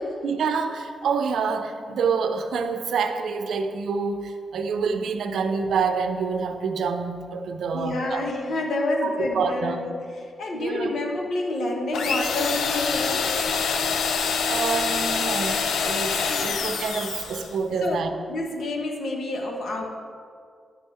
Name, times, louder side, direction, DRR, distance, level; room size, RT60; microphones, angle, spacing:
voice 1, 0.2-8.2 9.0-9.8 10.5-10.9 14.5-18.1, right 5 dB, 80° right, 7 dB, 0.6 m, -27 dB
voice 2, 7.7-9.9 10.4-13.3 17.8-18.0 18.3-19.8, left 2 dB, 60° left, 1 dB, 1.2 m, -28 dB
sound 1, 11.9-17.5, left 5 dB, 85° left, 0.5 m, -25 dB
10.5 x 5.5 x 4.3 m, 2.2 s
wide cardioid pair, 175°, 0 cm